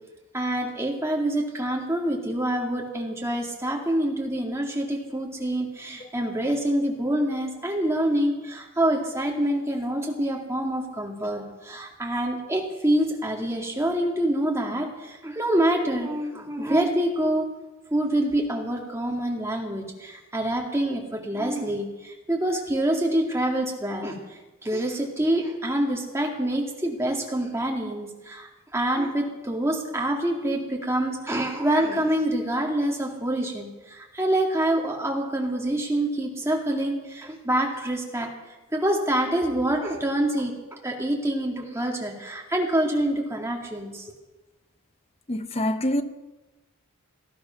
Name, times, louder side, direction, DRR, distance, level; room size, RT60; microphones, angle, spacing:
voice 1, 0.3-17.5 17.9-44.1, right 1 dB, 10° right, 2.3 m, -26 dB
voice 2, 45.3-46.0, left 1 dB, 25° left, 0.8 m, -25 dB
18.5 x 13.0 x 5.8 m
head